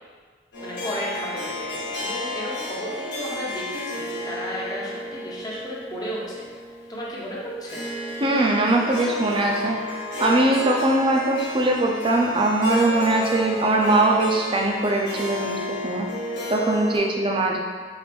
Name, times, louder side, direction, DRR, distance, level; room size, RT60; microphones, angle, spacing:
Harp, 0.5-17.0, left 1 dB, 90° left, 1.2 m, -32 dB
voice 1, 0.6-6.5 6.9-7.8, equal, 20° left, -5 dB, 0.8 m, -33 dB
voice 2, 8.2-16.1 16.5-17.6, right 2 dB, 30° right, 0 dB, 0.5 m, -21 dB
4.7 x 2.5 x 3.4 m, 1.5 s
head